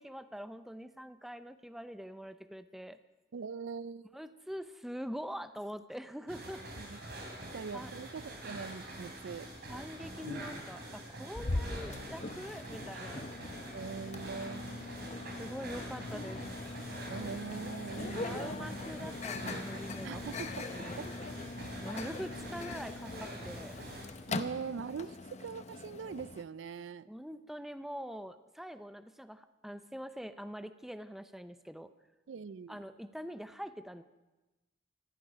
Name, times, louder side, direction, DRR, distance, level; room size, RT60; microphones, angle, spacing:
voice 1, 0.0-3.0 4.1-6.6 7.1-7.9 9.7-13.3 15.4-16.4 18.0-21.0 21.8-23.8 27.1-31.9 32.7-34.0, equal, ahead, 11 dB, 0.5 m, -44 dB
voice 2, 3.3-4.0 6.8-7.0 7.5-9.5 11.6-11.7 13.7-14.9 17.1-18.7 20.0-21.1 24.3-27.1 32.3-32.8, right 5 dB, 80° right, 18 dB, 0.4 m, -42 dB
sound 1, 6.3-24.1, right 1 dB, 60° right, 3.3 m, -45 dB
Microwave oven, 11.4-26.4, left 3 dB, 35° left, 0.7 m, -41 dB
15.0 x 13.0 x 6.2 m, 1.1 s
head